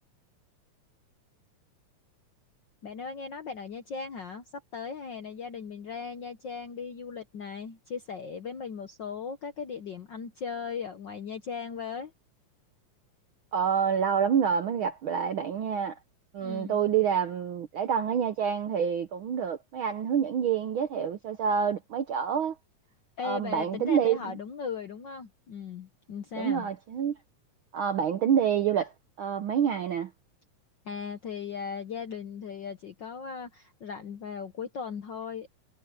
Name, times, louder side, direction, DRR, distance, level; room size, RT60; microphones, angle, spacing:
voice 1, 2.8-12.1 16.4-16.8 23.2-26.7 30.8-35.5, left 6 dB, 65° left, 1.1 m, -38 dB
voice 2, 13.5-16.0 16.3-22.5 23.2-24.2 26.3-27.2 27.7-28.9 29.2-30.1, right 8 dB, 70° right, 1.2 m, -27 dB
omnidirectional pair, 3.4 m